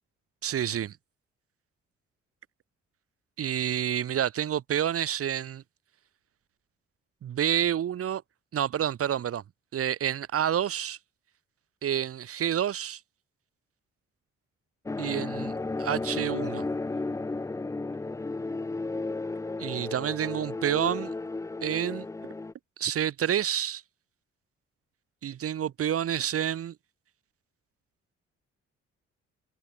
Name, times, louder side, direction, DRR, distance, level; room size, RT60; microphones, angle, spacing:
voice 1, 0.4-1.0 3.4-5.6 7.2-8.2 8.5-9.4 9.7-11.0 11.8-13.0 15.0-15.5 15.8-16.7 19.6-21.1 21.6-22.1 22.8-23.8 25.2-26.8, right 10 dB, 45° right, 0.6 m, -28 dB
sound 1, 14.9-22.5, left 3 dB, 10° left, 0.4 m, -33 dB
hypercardioid pair, 40°, 34 cm